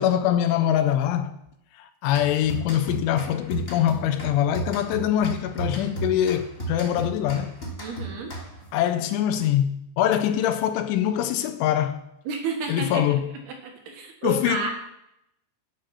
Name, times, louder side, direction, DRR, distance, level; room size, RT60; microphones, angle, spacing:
voice 1, 0.0-1.4 1.8-7.5 8.7-12.0 12.7-13.3 14.2-14.6, left 11 dB, 80° left, 3.0 m, -23 dB
sound 1, 2.1-8.8, right 3 dB, 20° left, 2.3 m, -35 dB
voice 2, 7.8-8.3 12.3-13.0 13.5-14.8, right 5 dB, 65° right, 3.0 m, -31 dB
13.0 x 9.9 x 6.0 m
omnidirectional pair, 5.8 m